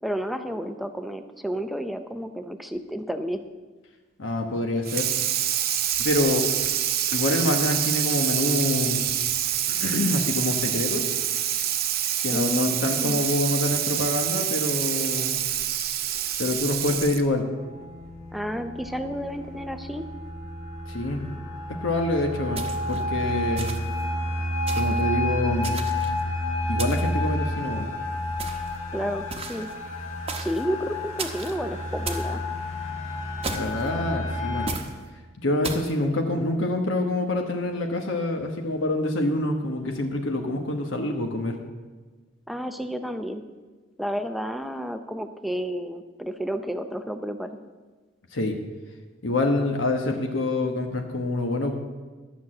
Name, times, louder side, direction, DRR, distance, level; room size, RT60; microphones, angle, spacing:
voice 1, 0.0-3.4 12.3-13.2 18.3-20.1 28.9-29.7 30.4-32.4 42.5-43.4 44.0-47.5, equal, ahead, 8 dB, 0.6 m, -31 dB
voice 2, 4.2-5.1 6.0-6.5 7.1-9.1 9.7-11.1 12.2-15.4 16.4-17.5 20.9-21.3 21.7-23.7 24.7-25.8 26.7-27.9 33.5-34.7 35.4-41.6 48.3-48.6 49.2-51.7, left 2 dB, 75° left, 3 dB, 1.2 m, -26 dB
Water tap faucet / Sink (filling or washing), 4.8-17.3, right 10 dB, 50° right, 0.7 m, -26 dB
sound 1, 17.5-34.7, left 1 dB, 35° left, 1.8 m, -30 dB
sound 2, 22.6-23.0 23.6-24.0 24.7-25.0 25.6-26.2 26.8-27.2 28.4-28.8 29.3-29.7 30.3-30.6 31.2-31.6 32.1-32.3 33.4-33.9 34.7-34.9 35.6-35.9, right 4 dB, 30° right, 1.0 m, -35 dB
12.0 x 6.2 x 7.5 m, 1.3 s
head